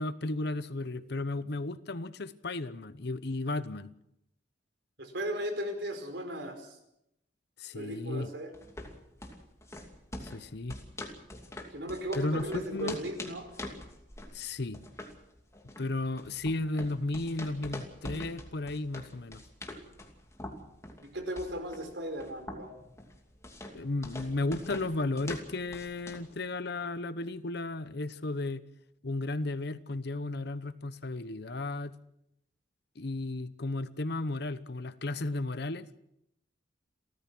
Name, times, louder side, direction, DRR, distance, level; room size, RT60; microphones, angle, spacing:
voice 1, 0.0-3.9 7.6-8.3 10.2-10.8 12.2-13.0 14.3-14.8 15.8-19.4 23.7-28.6 29.0-31.9 33.0-36.0, left 2 dB, 60° left, 14 dB, 0.9 m, -34 dB
voice 2, 5.0-6.8 7.7-8.5 11.7-13.5 21.0-22.7, right 1 dB, 70° right, 6 dB, 4.7 m, -36 dB
sound 1, 8.5-26.3, left 1 dB, 15° left, 2.7 m, -45 dB
30.0 x 14.0 x 6.2 m, 0.80 s
head